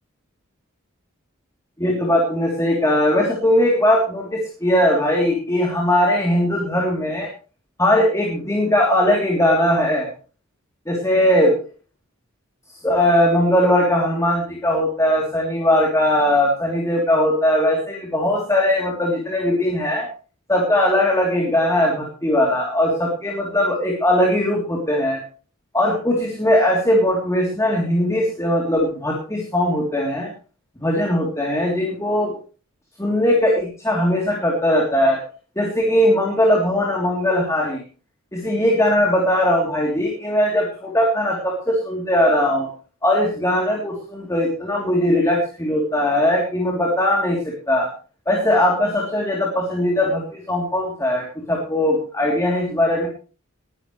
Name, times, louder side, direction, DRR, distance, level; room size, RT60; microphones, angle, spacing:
voice 1, 1.8-7.3 7.8-10.1 10.9-11.5 12.7-20.1 20.5-25.2 25.7-30.3 30.8-32.3 33.0-35.2 35.5-37.8 38.3-42.7 43.0-47.9 48.3-53.1, left 1 dB, 15° left, -1 dB, 3.3 m, -19 dB
21.0 x 11.5 x 3.3 m, 0.37 s
head